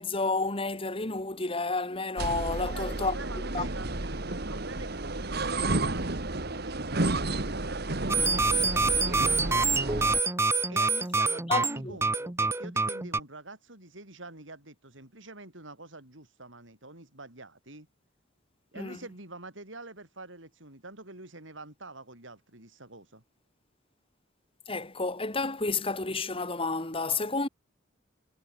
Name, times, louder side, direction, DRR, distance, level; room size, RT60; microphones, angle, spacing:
voice 1, 0.0-3.2 3.5-3.7 11.5-12.0 18.8-19.0 24.7-27.5, left 3 dB, 30° left, 3.0 m, -30 dB
sound 1, 2.2-10.2, right 2 dB, 55° right, 2.2 m, -31 dB
voice 2, 2.6-6.1 6.5-9.7 10.7-17.9 18.7-23.2, right 2 dB, 70° right, 6.8 m, -46 dB
sound 2, 8.1-13.2, right 3 dB, 15° right, 0.8 m, -26 dB
head